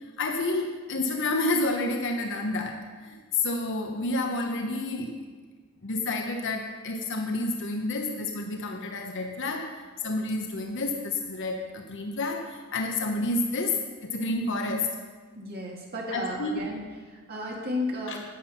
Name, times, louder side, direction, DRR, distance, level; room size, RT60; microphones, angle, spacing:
voice 1, 0.2-5.2 5.8-9.7 10.0-14.9 16.1-16.6 18.1-18.2, left 2 dB, 60° left, 3 dB, 1.0 m, -29 dB
voice 2, 15.4-16.8 17.1-18.2, left 1 dB, 45° right, -3 dB, 2.2 m, -33 dB
10.0 x 9.5 x 5.8 m, 1.4 s
head